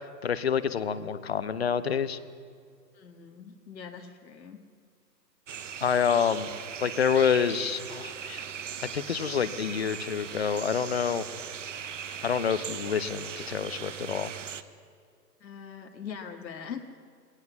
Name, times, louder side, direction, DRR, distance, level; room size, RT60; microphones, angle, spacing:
voice 1, 0.2-2.2 5.8-6.5 6.8-8.4 8.8-11.3 12.2-14.3, left 7 dB, 40° left, 14 dB, 0.7 m, -27 dB
voice 2, 2.9-4.6 15.4-16.8, left 7 dB, 85° left, 3 dB, 1.9 m, -42 dB
sound 1, 5.5-14.6, right 8 dB, 50° right, 0.9 m, -39 dB
21.0 x 18.0 x 7.1 m, 2.1 s
hypercardioid pair, 165°, 50 cm